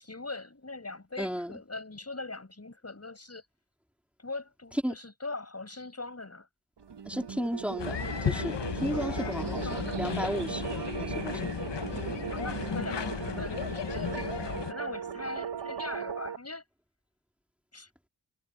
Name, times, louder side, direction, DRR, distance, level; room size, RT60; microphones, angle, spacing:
voice 1, 0.0-3.4 4.2-6.5 8.9-10.0 12.3-16.6 17.7-17.9, left 3 dB, 35° left, 6.4 m, -41 dB
voice 2, 1.2-1.5 4.8-4.9 7.1-11.4, equal, 5° right, 3.7 m, -34 dB
sound 1, 6.8-16.4, right 7 dB, 75° right, 1.3 m, -37 dB
sound 2, 7.8-14.7, left 7 dB, 85° left, 1.2 m, -34 dB
wide cardioid pair, 70°, 42 cm